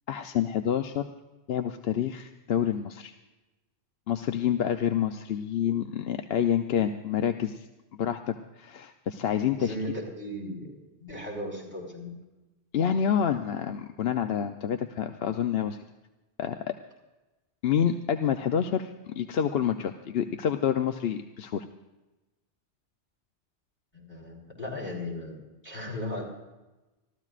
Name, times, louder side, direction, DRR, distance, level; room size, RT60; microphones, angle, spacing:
voice 1, 0.1-1.1 1.5-3.1 4.1-7.7 8.0-9.8 12.7-15.8 16.4-16.7 17.6-21.7, left 8 dB, 65° left, 7 dB, 0.9 m, -28 dB
voice 2, 9.5-12.1 23.9-25.4 25.6-26.2, left 1 dB, 40° left, -4 dB, 4.4 m, -36 dB
25.5 x 15.0 x 2.5 m, 1.1 s
omnidirectional pair, 1.1 m